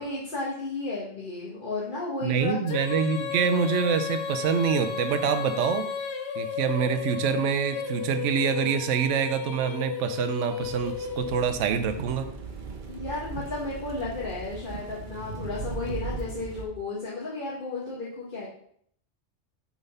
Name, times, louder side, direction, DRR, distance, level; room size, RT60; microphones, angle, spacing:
voice 1, 0.0-2.6 12.9-18.5, left 2 dB, 45° left, -6 dB, 1.5 m, -33 dB
voice 2, 2.2-5.8 6.4-12.3, right 7 dB, 80° right, 9 dB, 1.0 m, -26 dB
Female singing, 2.7-11.8, left 6 dB, 65° left, 1.0 m, -33 dB
sound 1, 10.6-16.6, right 4 dB, 45° right, 0.9 m, -38 dB
7.1 x 3.8 x 5.4 m, 0.65 s
omnidirectional pair, 1.2 m